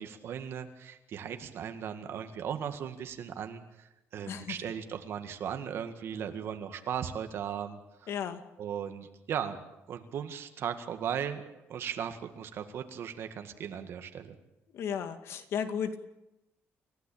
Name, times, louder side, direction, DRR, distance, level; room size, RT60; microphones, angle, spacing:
voice 1, 0.0-8.1 8.6-9.6 9.9-11.4 11.7-14.3, right 8 dB, 55° right, 7 dB, 2.0 m, -37 dB
voice 2, 8.1-8.4 14.7-16.0, left 8 dB, 60° left, 8 dB, 2.2 m, -34 dB
29.0 x 15.5 x 8.7 m, 0.94 s
cardioid pair, 150°, 5 cm